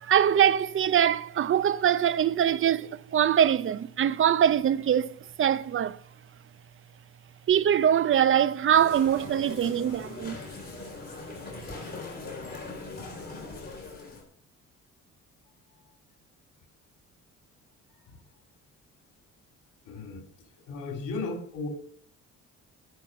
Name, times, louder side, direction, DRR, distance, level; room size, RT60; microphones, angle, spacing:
voice 1, 0.0-6.0 7.5-10.4, right 9 dB, 45° right, 0.5 m, -23 dB
sound 1, 8.7-14.2, left 3 dB, 30° left, 3.4 m, -41 dB
voice 2, 19.9-20.3 20.7-21.7, left 3 dB, 85° left, 2.3 m, -35 dB
11.0 x 5.7 x 5.9 m
cardioid pair, 90°, 30 cm